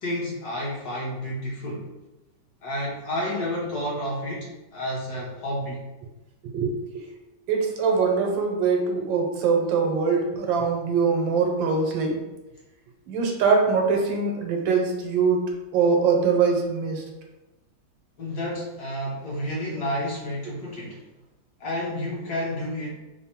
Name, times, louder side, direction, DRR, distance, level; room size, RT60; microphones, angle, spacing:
voice 1, 0.0-1.9 2.6-5.8 18.2-21.0 21.6-22.9, left 1 dB, 60° left, -4 dB, 1.4 m, -30 dB
voice 2, 6.4-7.0 7.5-12.2 13.1-17.1, right 5 dB, 90° right, 2 dB, 1.4 m, -23 dB
3.6 x 2.1 x 4.2 m, 1.0 s
omnidirectional pair, 2.0 m